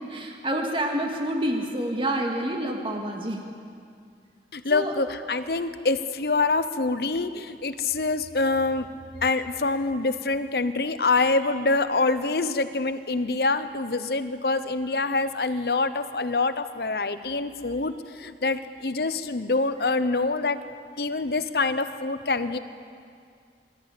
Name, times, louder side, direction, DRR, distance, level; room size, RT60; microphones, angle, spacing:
voice 1, 0.1-3.4 4.7-4.9, right 1 dB, 30° right, 2 dB, 2.0 m, -28 dB
voice 2, 4.5-8.9 9.2-20.6 21.0-22.6, left 3 dB, 60° left, 11 dB, 0.9 m, -25 dB
22.5 x 13.5 x 8.5 m, 2.3 s
head